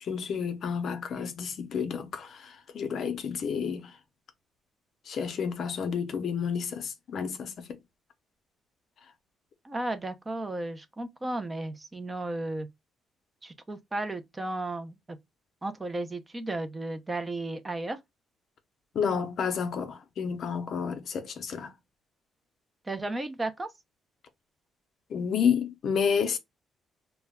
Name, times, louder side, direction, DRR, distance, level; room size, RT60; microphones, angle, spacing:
voice 1, 0.0-3.9 5.1-7.8 18.9-21.7 25.1-26.4, left 6 dB, 60° left, 0.5 m, -30 dB
voice 2, 9.6-12.7 13.4-15.0 15.6-18.0 22.9-23.7, right 2 dB, 20° right, 0.5 m, -34 dB
2.2 x 2.1 x 3.4 m
cardioid pair, 90°, 0 cm